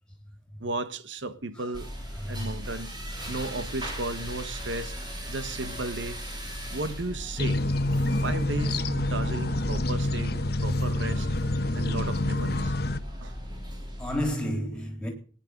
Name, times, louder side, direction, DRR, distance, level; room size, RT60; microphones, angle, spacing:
voice 1, 0.6-1.9 2.3-2.9 3.3-5.0 5.3-6.2 6.7-11.3 11.7-12.8 13.2-13.3, right 2 dB, 85° right, 1.2 m, -35 dB
sound 1, 1.7-14.3, equal, 25° right, 3.9 m, -38 dB
voice 2, 2.2-2.5 3.1-3.4 14.0-15.1, equal, 5° left, 3.5 m, -32 dB
sound 2, 7.4-13.0, left 1 dB, 55° left, 0.9 m, -27 dB
19.5 x 9.8 x 6.5 m
head